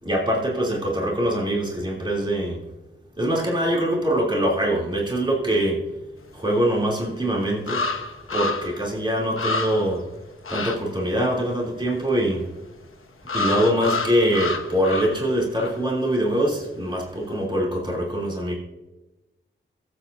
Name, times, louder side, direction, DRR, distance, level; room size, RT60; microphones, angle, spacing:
voice 1, 0.0-2.6 3.2-5.8 6.3-7.8 8.3-10.0 10.5-12.4 13.3-18.5, right 1 dB, 25° right, -3 dB, 3.0 m, -23 dB
sound 1, 6.8-6.9 7.7-8.8 9.1-9.2 9.4-10.0 10.4-10.8 13.3-15.3 15.6-15.8, left 3 dB, 85° left, 1.1 m, -28 dB
23.0 x 8.3 x 2.7 m, 1.0 s
wide cardioid pair, 80°, 21 cm